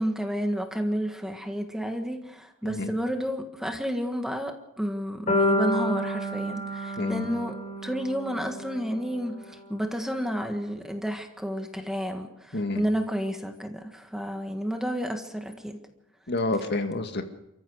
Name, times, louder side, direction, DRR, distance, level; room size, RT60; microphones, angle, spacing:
voice 1, 0.0-7.6 7.8-15.8, equal, ahead, 5 dB, 1.7 m, -31 dB
sound 1, 5.3-9.4, left 1 dB, 35° left, 4.6 m, -29 dB
voice 2, 16.3-17.2, left 2 dB, 50° left, 6 dB, 1.9 m, -28 dB
29.5 x 14.5 x 6.5 m, 0.89 s
head